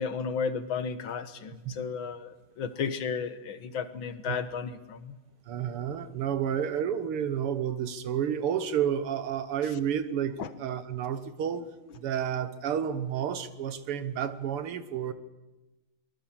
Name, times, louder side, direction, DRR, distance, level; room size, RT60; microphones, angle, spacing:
voice 1, 0.0-5.2 10.4-10.5, left 6 dB, 65° left, 12 dB, 2.0 m, -33 dB
voice 2, 5.5-11.7 12.0-15.1, right 9 dB, 85° right, 12 dB, 2.2 m, -30 dB
23.5 x 20.5 x 7.4 m, 1.1 s
omnidirectional pair, 2.4 m